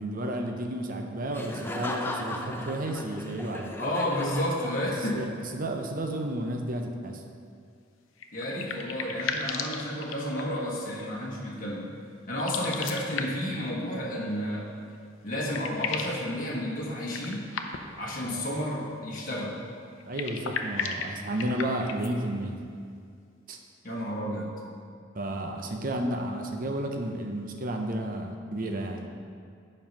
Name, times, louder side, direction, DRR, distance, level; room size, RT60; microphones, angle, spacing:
voice 1, 0.0-3.7 5.1-7.2 18.2-18.5 20.1-22.6 23.5-23.6 25.1-29.1, right 1 dB, 45° right, 3 dB, 0.7 m, -32 dB
Laughter, 1.3-5.2, left 1 dB, 10° left, 0.5 m, -37 dB
voice 2, 3.8-5.3 8.3-11.9 12.3-14.7 15.2-17.5 17.9-19.6 23.8-24.5, left 1 dB, 45° left, -4 dB, 1.3 m, -31 dB
sound 1, 8.2-10.7 12.3-13.6 14.9-15.0 15.3-16.2 17.1-18.0 20.0-22.1, left 5 dB, 70° left, 0.6 m, -35 dB
7.6 x 5.4 x 5.4 m, 2.2 s
head